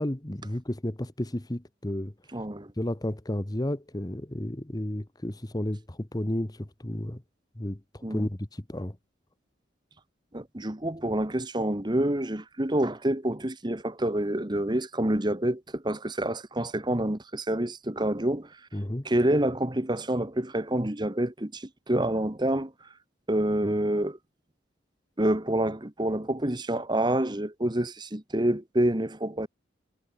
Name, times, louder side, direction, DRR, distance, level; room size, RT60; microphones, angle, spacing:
voice 1, 0.0-2.1 2.8-7.2 7.6-9.0 18.7-19.1, left 1 dB, 20° left, 1.1 m, -32 dB
voice 2, 2.3-2.7 8.0-8.3 10.3-18.5 19.0-22.7 23.3-24.2 25.2-29.5, right 1 dB, 25° right, 1.5 m, -27 dB
head